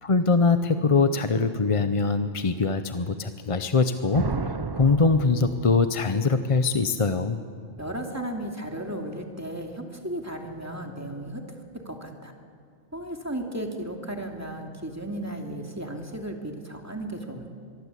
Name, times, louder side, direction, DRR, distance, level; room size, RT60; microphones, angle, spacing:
voice 1, 0.0-7.4, left 4 dB, 30° left, 9 dB, 0.7 m, -23 dB
sound 1, 4.1-6.1, right 4 dB, 30° right, 0.5 m, -32 dB
voice 2, 7.8-11.4 11.8-12.3 12.9-17.6, right 1 dB, 15° right, 2 dB, 2.5 m, -35 dB
23.5 x 23.0 x 8.3 m, 2.2 s
omnidirectional pair, 1.2 m